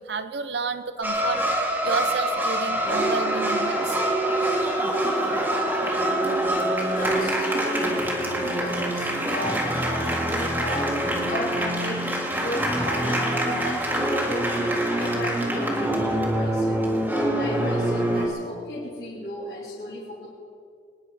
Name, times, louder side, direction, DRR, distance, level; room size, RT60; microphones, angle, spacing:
voice 1, 0.0-1.4 1.8-4.0, right 4 dB, 80° right, 11 dB, 0.9 m, -30 dB
sound 1, 1.0-18.3, right 1 dB, 10° right, 1.7 m, -25 dB
voice 2, 6.9-8.1 8.4-16.8 17.2-20.3, left 1 dB, 65° left, -8 dB, 3.4 m, -35 dB
25.5 x 10.0 x 5.0 m, 2.4 s
head